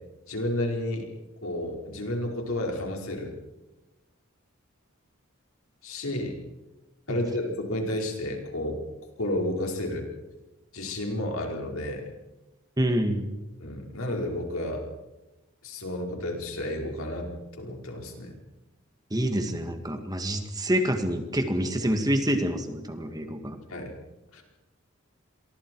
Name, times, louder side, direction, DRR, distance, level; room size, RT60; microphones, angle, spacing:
voice 1, 0.3-1.1 1.4-3.3 5.8-6.4 7.1-8.8 9.2-10.1 10.7-12.1 13.6-14.8 15.6-17.3 17.6-18.3 23.7-23.9 24.3-24.4, left 1 dB, 85° left, 1 dB, 4.9 m, -31 dB
voice 2, 12.8-13.3 19.1-23.6, equal, 20° right, 6 dB, 1.8 m, -27 dB
29.5 x 23.0 x 4.7 m, 1.0 s
head